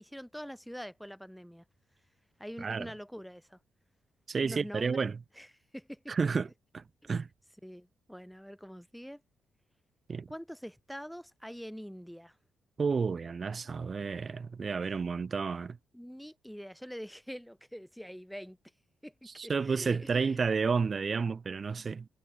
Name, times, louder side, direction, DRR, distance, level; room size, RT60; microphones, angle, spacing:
voice 1, 0.0-1.6 2.4-3.6 4.4-6.3 7.6-9.2 10.3-12.4 14.8-14.9 15.9-18.6 19.0-20.4, equal, ahead, 6.0 m, -45 dB
voice 2, 4.3-5.1 6.1-6.5 6.7-7.3 10.1-10.3 12.8-15.8 19.4-22.1, right 5 dB, 45° right, 0.3 m, -31 dB
supercardioid pair, 55°, 0 cm